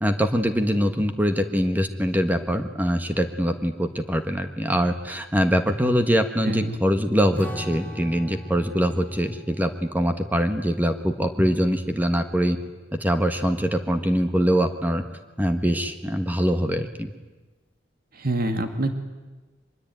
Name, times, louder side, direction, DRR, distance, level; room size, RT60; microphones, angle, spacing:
voice 1, 0.0-12.6 13.0-15.0 15.4-17.1, equal, 10° right, 7 dB, 1.5 m, -23 dB
Strum, 7.4-12.0, equal, 10° left, 2.8 m, -41 dB
voice 2, 18.2-18.9, right 1 dB, 55° right, 7 dB, 2.3 m, -26 dB
24.5 x 21.5 x 9.3 m, 1.2 s
head